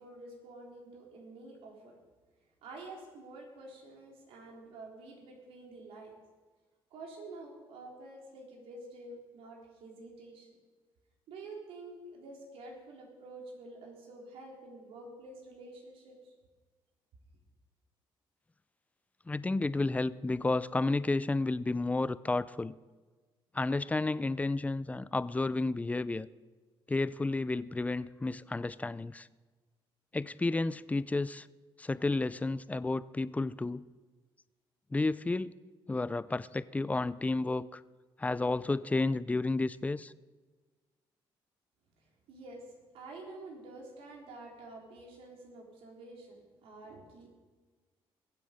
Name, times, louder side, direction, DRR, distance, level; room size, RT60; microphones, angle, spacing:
voice 1, 0.0-2.0 2.6-6.2 6.9-10.6 11.3-16.3 42.0-47.3, right 2 dB, 80° right, 0 dB, 3.6 m, -49 dB
voice 2, 19.3-22.7 23.5-26.3 26.9-29.3 30.1-31.5 31.8-33.8 34.9-35.5 35.9-37.8 38.2-40.1, left 2 dB, 15° left, 17 dB, 0.4 m, -31 dB
22.0 x 7.6 x 5.1 m, 1.4 s
cardioid pair, 90°, 10 cm